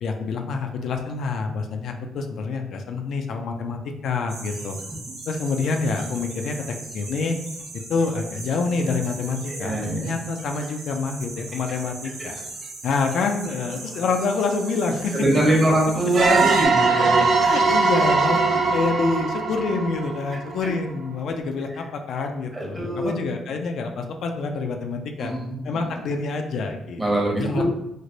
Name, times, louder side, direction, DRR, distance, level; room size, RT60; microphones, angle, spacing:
voice 1, 0.0-4.8 5.3-6.6 6.9-7.4 7.9-12.4 12.8-15.1 16.0-16.3 17.0-18.4 18.7-25.3 25.6-27.6, left 4 dB, 70° left, 4 dB, 0.4 m, -27 dB
sound 1, 4.3-16.7, right 3 dB, 80° right, 0.9 m, -38 dB
voice 2, 9.5-10.1 15.1-17.1 22.5-23.2 25.2-25.9 27.0-27.6, right 1 dB, 25° right, -1 dB, 1.0 m, -23 dB
sound 2, 16.1-20.7, right 4 dB, 50° right, 0.5 m, -21 dB
3.2 x 2.1 x 3.8 m, 0.85 s
cardioid pair, 90°, 0 cm